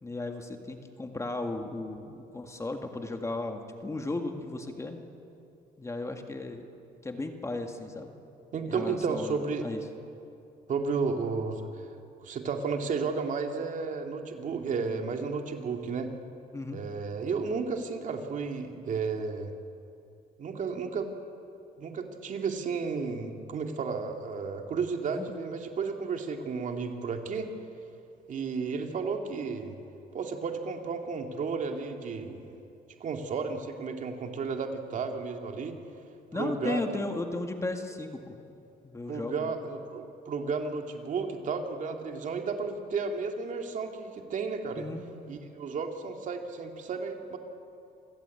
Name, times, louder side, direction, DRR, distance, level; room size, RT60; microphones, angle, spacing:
voice 1, 0.0-5.0 5.8-6.7 7.0-8.1 8.7-9.8 16.5-16.8 25.1-25.3 36.3-38.4 38.8-39.5 44.8-45.0, left 2 dB, 15° left, 5 dB, 1.9 m, -35 dB
voice 2, 8.5-9.7 10.7-11.9 12.2-16.1 16.7-19.5 20.4-21.1 21.8-27.5 28.3-29.7 30.1-32.5 33.0-35.8 36.3-37.0 39.1-44.9 45.3-47.4, right 5 dB, 50° right, 4 dB, 2.4 m, -33 dB
27.0 x 16.0 x 8.5 m, 2.7 s
cardioid pair, 110°, 17 cm